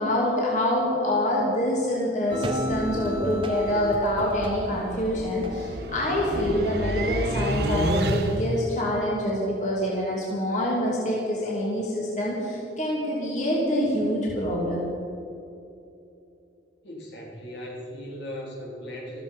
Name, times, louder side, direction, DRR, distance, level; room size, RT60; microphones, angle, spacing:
voice 1, 0.0-14.9, left 1 dB, 40° left, -4 dB, 2.9 m, -26 dB
sound 1, 2.3-7.3, equal, 25° right, 1.1 m, -33 dB
sound 2, 3.0-8.7, right 1 dB, 55° right, 1.3 m, -30 dB
voice 2, 16.8-19.2, equal, 65° left, -2 dB, 3.8 m, -38 dB
14.5 x 14.0 x 5.7 m, 2.8 s
head